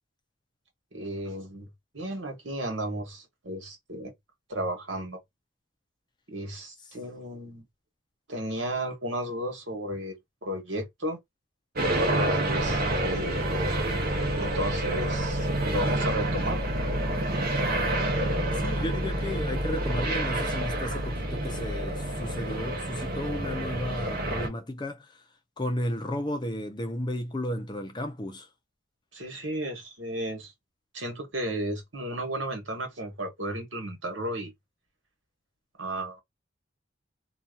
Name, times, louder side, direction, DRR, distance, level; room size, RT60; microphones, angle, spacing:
voice 1, 0.9-1.7 1.9-4.1 4.5-5.2 6.3-7.6 8.3-10.2 10.4-11.2 12.4-16.6 29.1-30.5 30.9-34.5 35.8-36.2, right 1 dB, 75° right, 1.4 m, -34 dB
sound 1, 11.8-24.5, right 1 dB, 50° right, 0.9 m, -28 dB
voice 2, 18.6-25.1 25.6-28.5, left 1 dB, 25° left, 0.5 m, -33 dB
2.8 x 2.4 x 2.3 m
head